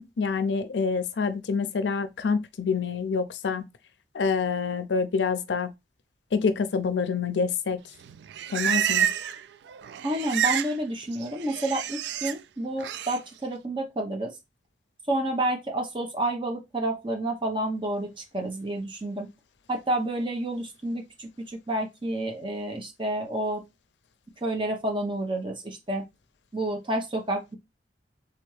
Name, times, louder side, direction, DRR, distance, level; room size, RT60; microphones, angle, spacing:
voice 1, 0.0-3.6 4.1-5.7 6.3-7.8 8.5-9.1, left 5 dB, 85° left, 0.5 m, -27 dB
Livestock farm animals working animals, 8.0-9.4 9.7-10.7 11.0-12.3 12.8-13.2, right 10 dB, 75° right, 0.3 m, -28 dB
voice 2, 10.0-14.3 15.1-19.3 19.7-23.6 24.4-26.0 26.5-27.6, right 1 dB, 30° right, 0.9 m, -29 dB
3.4 x 3.4 x 3.2 m
head